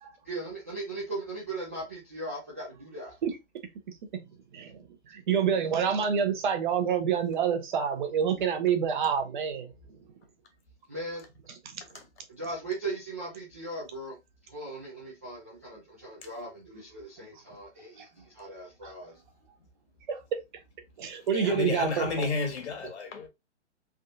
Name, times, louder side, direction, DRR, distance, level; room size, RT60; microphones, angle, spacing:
voice 1, 0.3-3.1 10.9-11.2 12.3-14.2 14.5-19.2, right 2 dB, 15° right, 0.3 m, -38 dB
voice 2, 4.5-9.7 11.5-11.8 18.0-18.1 18.8-18.9 20.1-20.2 21.0-22.3, right 7 dB, 40° right, 0.7 m, -28 dB
voice 3, 21.3-23.3, left 4 dB, 65° left, 1.4 m, -32 dB
3.5 x 2.3 x 2.6 m
hypercardioid pair, 145°, 36 cm